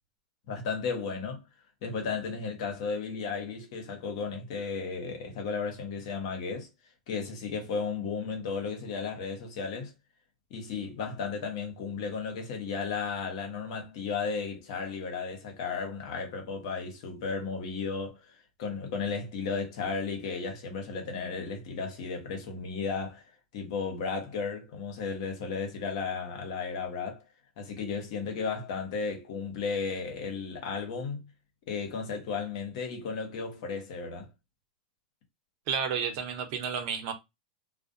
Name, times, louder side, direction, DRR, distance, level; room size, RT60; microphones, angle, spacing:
voice 1, 0.5-1.4 1.8-6.7 7.1-9.9 10.5-23.2 23.5-27.2 27.6-31.3 31.7-34.3, left 5 dB, 60° left, 0.9 m, -34 dB
voice 2, 35.7-37.1, right 6 dB, 55° right, 0.7 m, -31 dB
2.4 x 2.1 x 2.6 m
hypercardioid pair, 100°, 3 cm